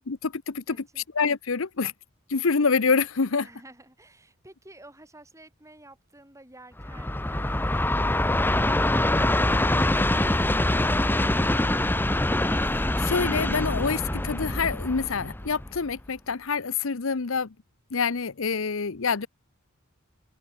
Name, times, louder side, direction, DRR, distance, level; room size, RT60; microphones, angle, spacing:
voice 1, 0.1-0.8 1.2-1.9 2.3-3.5 12.8-17.5 17.9-19.3, left 5 dB, 65° left, 0.8 m, -26 dB
voice 2, 0.7-1.1 3.4-12.1, right 1 dB, 15° right, 6.8 m, -52 dB
Train, 6.8-16.0, left 1 dB, 10° left, 0.7 m, -24 dB
head